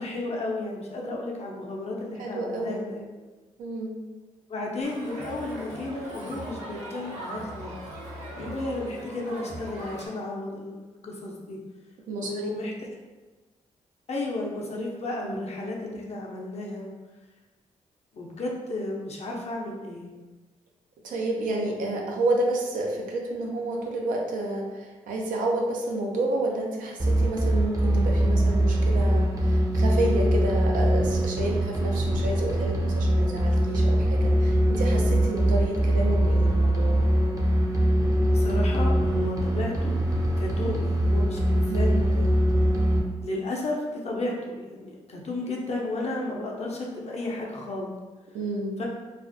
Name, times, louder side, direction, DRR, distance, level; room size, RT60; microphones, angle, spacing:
voice 1, 0.0-3.1 4.5-7.8 8.4-10.8 11.0-11.6 12.2-12.9 14.1-16.9 18.1-20.1 38.3-39.9 40.4-42.5 43.2-47.9 48.8-48.9, left 2 dB, 55° left, -2 dB, 0.6 m, -33 dB
voice 2, 2.2-2.8 3.6-3.9 12.1-12.5 15.2-15.4 21.0-24.7 25.1-37.0 41.7-42.0 48.3-48.8, right 2 dB, 85° right, 0 dB, 0.4 m, -30 dB
Crowd, 4.8-10.1, right 1 dB, 60° right, 1.0 m, -39 dB
sound 1, 27.0-43.0, right 1 dB, 25° right, 0.5 m, -23 dB
2.4 x 2.0 x 2.6 m, 1.2 s
supercardioid pair, 50°, 13 cm